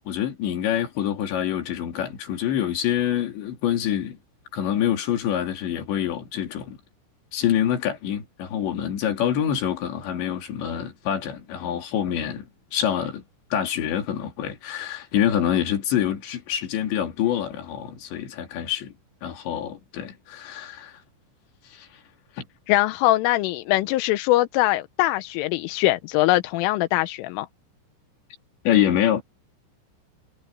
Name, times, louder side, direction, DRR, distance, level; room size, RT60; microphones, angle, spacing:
voice 1, 0.0-4.2 4.5-6.8 7.3-12.4 12.7-13.2 13.5-18.9 19.2-20.9 21.7-21.9 22.4-22.5 28.6-29.2, left 10 dB, 65° left, 4.9 m, -26 dB
voice 2, 22.7-27.5, left 17 dB, 85° left, 3.3 m, -22 dB
omnidirectional pair, 5.8 m